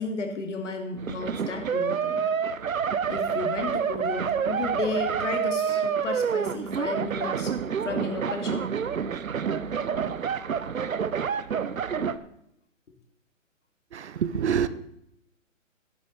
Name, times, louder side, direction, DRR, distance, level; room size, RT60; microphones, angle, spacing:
voice 1, 0.0-2.2 3.1-7.5 7.8-8.7, left 4 dB, 65° left, 4 dB, 2.4 m, -33 dB
sound 1, 1.0-12.2, right 7 dB, 90° right, 0.8 m, -28 dB
voice 2, 13.9-14.7, right 8 dB, 55° right, 14 dB, 0.8 m, -26 dB
11.0 x 10.5 x 4.0 m, 0.76 s
hypercardioid pair, 145°, 40 cm